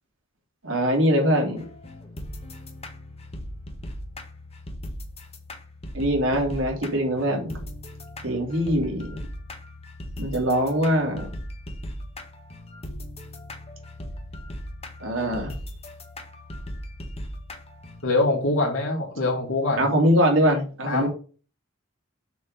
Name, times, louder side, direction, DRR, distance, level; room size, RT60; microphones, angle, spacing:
voice 1, 0.6-1.6 5.9-7.6 8.2-9.2 10.2-11.3 15.0-15.5 19.8-21.1, equal, 80° right, 0 dB, 3.0 m, -22 dB
sound 1, 1.6-18.0, left 1 dB, 30° left, 1.4 m, -38 dB
voice 2, 18.0-19.8 20.9-21.1, left 2 dB, 85° left, -4 dB, 2.2 m, -23 dB
6.9 x 4.6 x 5.2 m, 0.38 s
head